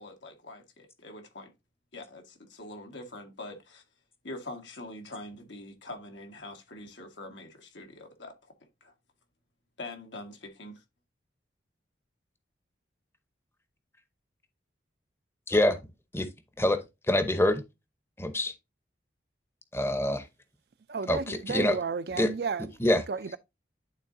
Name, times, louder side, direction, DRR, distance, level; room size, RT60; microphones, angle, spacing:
voice 1, 0.0-1.5 1.9-3.8 4.2-8.9 9.8-10.8, left 2 dB, 80° left, 1.6 m, -44 dB
voice 2, 15.5-15.8 16.1-16.3 16.6-16.8 17.1-17.6 18.2-18.5 19.7-20.3 21.1-21.8 22.2-22.3 22.8-23.0, left 1 dB, 15° left, 0.7 m, -25 dB
voice 3, 20.9-22.7 22.9-23.4, right 5 dB, 55° right, 0.4 m, -33 dB
11.5 x 3.8 x 2.6 m
head